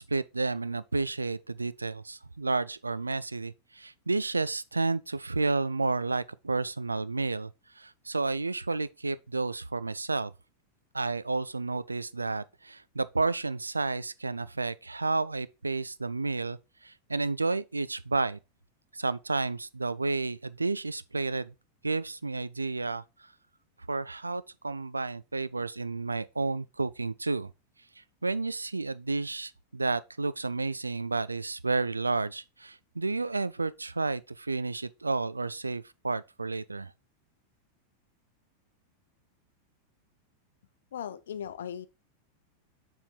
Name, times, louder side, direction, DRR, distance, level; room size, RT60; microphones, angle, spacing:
voice 1, 0.0-10.3 10.9-18.4 18.9-21.5 21.8-23.0 23.9-27.5 28.0-36.9, right 3 dB, 80° right, 0.3 m, -31 dB
voice 2, 40.9-41.9, left 9 dB, 60° left, 0.6 m, -37 dB
7.2 x 3.8 x 4.4 m
figure-of-eight pair, 90°, 0 cm